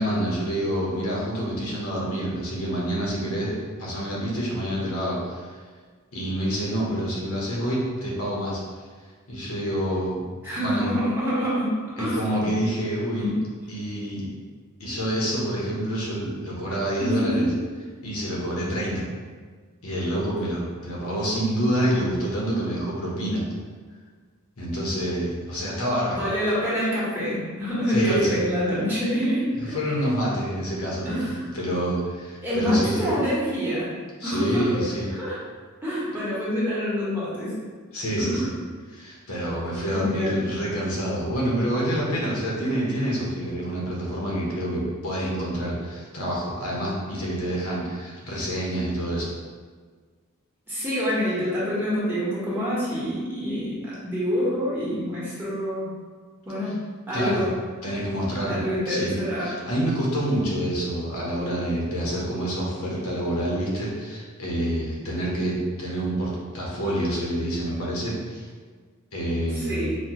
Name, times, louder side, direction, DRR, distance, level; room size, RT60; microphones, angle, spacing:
voice 1, 0.0-5.5 6.1-8.6 9.3-10.2 10.5-10.9 12.0-13.3 13.7-14.3 14.8-17.5 18.0-19.0 19.8-23.4 24.6-26.2 27.9-28.4 29.6-33.1 34.2-35.1 37.9-38.5 38.9-49.3 56.6-56.7 57.1-57.5 57.8-68.5 69.1-69.9, equal, 85° left, -4 dB, 1.0 m, -27 dB
voice 2, 10.4-12.2 13.2-13.3 17.0-17.6 26.1-29.7 31.0-31.5 32.4-33.9 34.2-34.7 35.1-35.4 35.8-37.6 38.2-38.5 39.9-40.4 50.7-55.9 56.4-56.8 57.1-57.5 58.5-59.5 69.5-70.0, equal, 10° right, -9 dB, 1.1 m, -26 dB
4.2 x 2.3 x 2.9 m, 1.5 s
head